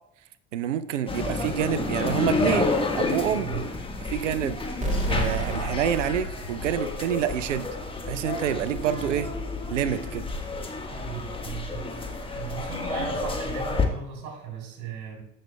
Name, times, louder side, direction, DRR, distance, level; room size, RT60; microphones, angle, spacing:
voice 1, 0.5-3.5 4.1-4.6 5.1-7.7 8.1-9.3 9.7-10.3 13.0-13.1, right 10 dB, 80° right, 15 dB, 0.6 m, -27 dB
sound 1, 1.1-13.8, left 3 dB, 15° left, 1.4 m, -30 dB
sound 2, 4.8-7.5, right 1 dB, 20° right, 2.3 m, -31 dB
voice 2, 10.9-11.8 12.3-15.2, right 7 dB, 50° right, 0 dB, 3.6 m, -37 dB
15.0 x 6.5 x 2.2 m, 0.80 s
figure-of-eight pair, 60°, 37 cm